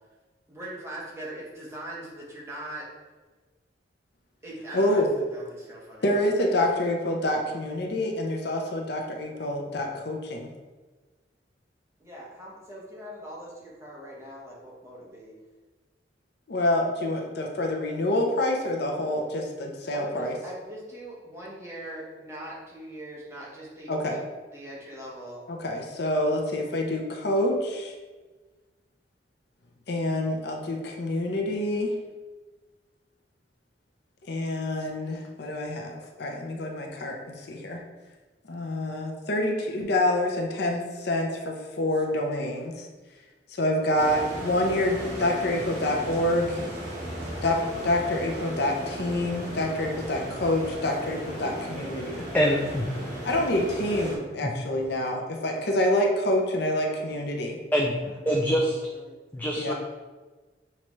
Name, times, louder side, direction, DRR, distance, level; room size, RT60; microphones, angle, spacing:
voice 1, 0.5-2.8 4.4-6.1 12.0-15.3 19.9-24.2 24.5-25.4 58.0-59.2, right 1 dB, 15° right, -6 dB, 1.1 m, -41 dB
voice 2, 4.7-5.1 6.0-10.5 16.5-20.3 23.9-24.2 25.5-27.9 29.9-31.9 34.3-37.8 38.5-42.9 43.6-46.6 47.4-52.2 53.2-57.6 59.6-59.7, left 1 dB, 60° left, 1 dB, 0.6 m, -27 dB
sound 1, 44.0-54.2, right 1 dB, 50° right, 1.3 m, -36 dB
voice 3, 52.2-52.9 54.4-54.5 57.7-58.0 58.3-58.8 59.3-59.7, equal, 10° left, -1 dB, 0.3 m, -24 dB
5.8 x 2.8 x 3.1 m, 1.3 s
head